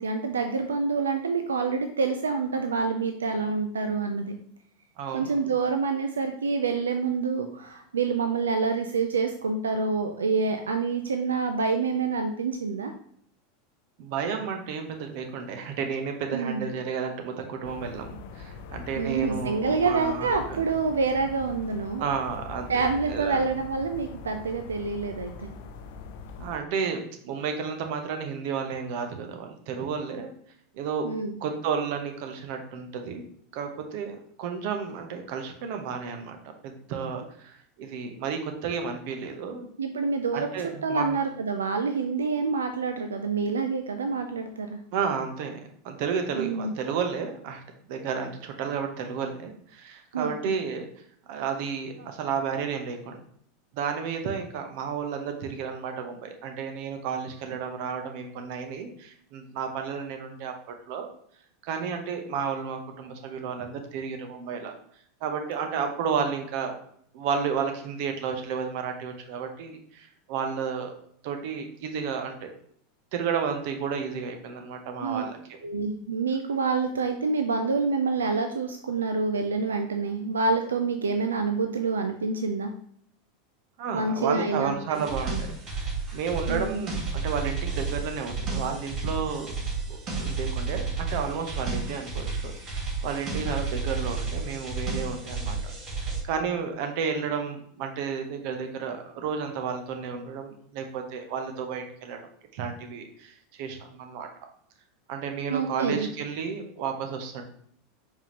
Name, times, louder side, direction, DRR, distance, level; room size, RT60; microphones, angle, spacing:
voice 1, 0.0-4.4 5.1-12.9 16.3-16.7 19.0-22.0 22.7-25.6 31.0-31.4 39.8-40.5 40.8-44.8 46.4-46.7 50.1-50.5 75.0-75.2 75.6-82.7 83.9-84.7 86.5-86.8 105.5-106.1, right 4 dB, 90° right, 6 dB, 0.3 m, -27 dB
voice 2, 5.0-5.4 14.0-20.6 22.0-22.8 23.1-23.5 26.4-30.3 30.7-31.0 31.4-33.3 33.5-39.7 40.3-41.2 44.9-45.6 45.8-47.6 47.9-50.9 51.3-53.2 53.7-61.1 61.6-64.7 65.2-66.8 67.1-70.9 71.2-72.5 73.1-75.6 83.8-85.5 85.7-89.5 89.9-95.6 96.0-102.2 102.5-104.3 105.1-107.4, right 6 dB, 60° right, 5 dB, 0.8 m, -32 dB
sound 1, 17.6-26.6, left 5 dB, 65° left, 0.4 m, -42 dB
sound 2, 84.9-96.2, right 4 dB, 45° right, 1.6 m, -32 dB
4.6 x 3.6 x 2.9 m, 0.65 s
hypercardioid pair, 95°, 0 cm